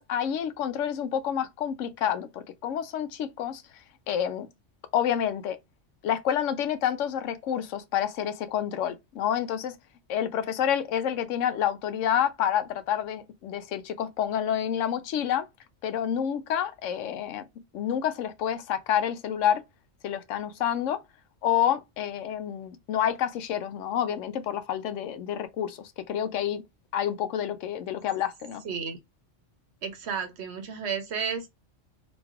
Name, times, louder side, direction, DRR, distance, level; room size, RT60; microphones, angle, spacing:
voice 1, 0.0-3.6 4.1-4.5 4.9-5.6 6.0-9.8 10.1-15.4 15.8-17.4 17.7-19.6 20.0-21.0 21.4-26.6 26.9-28.6, left 9 dB, 85° left, 0.9 m, -28 dB
voice 2, 28.6-29.0 29.8-31.5, right 6 dB, 65° right, 0.9 m, -32 dB
3.1 x 2.5 x 3.4 m
omnidirectional pair, 1.2 m